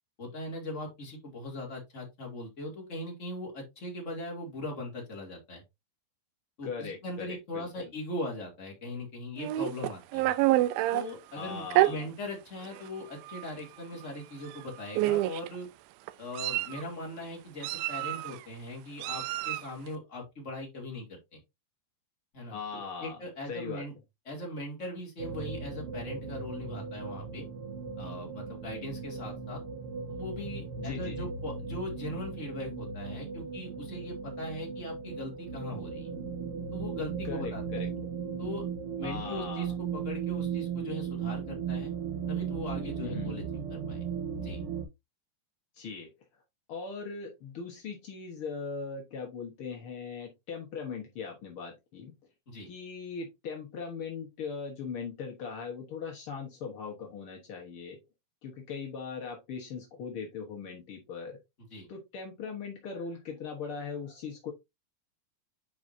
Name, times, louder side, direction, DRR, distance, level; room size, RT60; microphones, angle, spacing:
voice 1, 0.2-5.6 6.6-10.3 10.9-15.7 16.2-21.4 22.3-23.9 24.3-27.5 28.0-29.6 30.1-36.1 36.7-37.6 38.4-38.6 39.0-41.9 42.3-43.4 43.7-44.1 44.4-44.6 52.5-52.7 61.7-61.9, left 1 dB, 20° left, 2.4 m, -40 dB
voice 2, 6.6-7.9 11.3-12.1 22.5-23.2 23.5-23.8 30.8-31.3 37.2-37.9 39.0-39.8 43.0-43.3 45.7-46.1 46.7-52.1 52.6-58.0 58.4-61.4 61.9-64.5, left 5 dB, 70° left, 1.3 m, -39 dB
Meow, 9.4-11.0 11.7-11.9 12.8-12.9 13.2-13.5 14.5-14.6 15.0-15.5 16.1-16.8 17.6-18.4 19.0-19.7, right 16 dB, 80° right, 2.3 m, -27 dB
sound 1, 25.2-44.8, right 6 dB, 50° right, 2.2 m, -37 dB
9.4 x 4.8 x 2.7 m
omnidirectional pair, 4.4 m